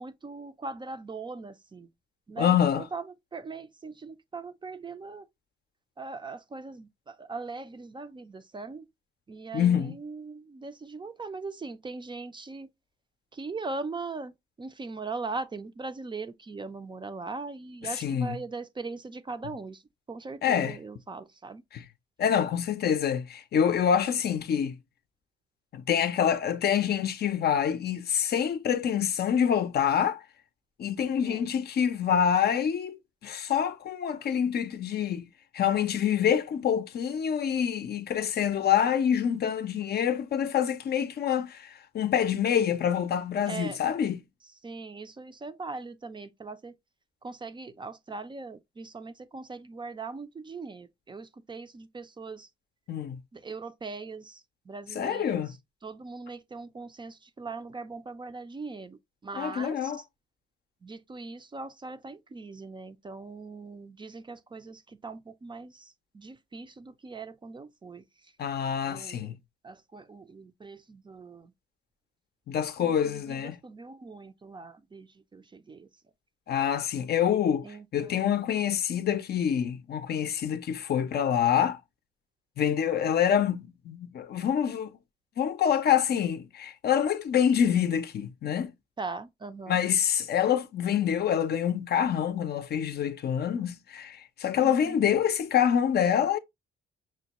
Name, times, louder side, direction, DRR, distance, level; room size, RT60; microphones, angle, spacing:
voice 1, 0.0-1.9 2.3-3.0 3.3-5.2 6.0-8.9 9.3-12.7 13.3-14.3 14.6-19.8 20.1-21.6 31.2-31.4 43.5-43.8 44.6-46.7 47.2-52.5 53.3-54.4 54.7-55.4 55.8-59.9 60.8-68.0 68.9-69.3 69.6-71.5 72.8-75.9 77.6-78.3 89.0-89.8 94.6-95.0, right 3 dB, 25° right, 0.4 m, -40 dB
voice 2, 2.4-2.9 9.5-10.0 17.8-18.4 20.4-20.8 21.7-21.8 22.2-24.8 25.7-30.2 30.8-35.3 35.5-44.2 52.9-53.2 54.9-55.5 59.3-60.0 68.4-69.4 72.5-73.6 76.5-77.7 77.9-81.8 82.6-84.9 85.4-88.7 89.7-96.4, left 8 dB, 55° left, 0.5 m, -26 dB
6.1 x 2.1 x 2.9 m
cardioid pair, 90°, 20 cm